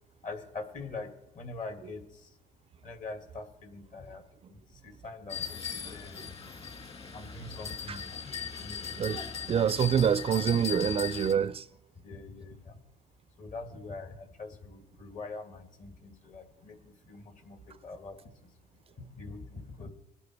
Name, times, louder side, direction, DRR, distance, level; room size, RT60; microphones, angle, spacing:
voice 1, 0.2-2.4 2.8-4.2 4.5-6.2 7.1-8.9 9.6-9.8 12.0-12.8 13.4-18.5 19.0-19.9, left 3 dB, 50° left, 2.3 m, -44 dB
sound 1, 5.3-11.3, left 6 dB, 35° left, 2.4 m, -39 dB
voice 2, 9.5-11.6, right 8 dB, 35° right, 0.4 m, -26 dB
23.0 x 8.4 x 4.7 m
cardioid pair, 110°, 17 cm